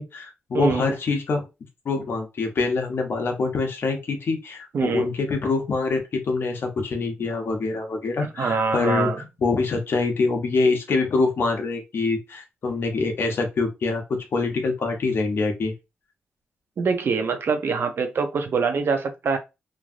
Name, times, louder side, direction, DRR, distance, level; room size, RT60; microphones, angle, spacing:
voice 1, 0.0-1.4 1.8-9.1 9.4-15.7, left 3 dB, 60° left, 0.9 m, -25 dB
voice 2, 0.5-0.9 4.7-5.1 8.4-9.2 16.8-19.4, right 5 dB, 60° right, 0.6 m, -24 dB
3.1 x 2.6 x 2.4 m
wide cardioid pair, 120°, 4 cm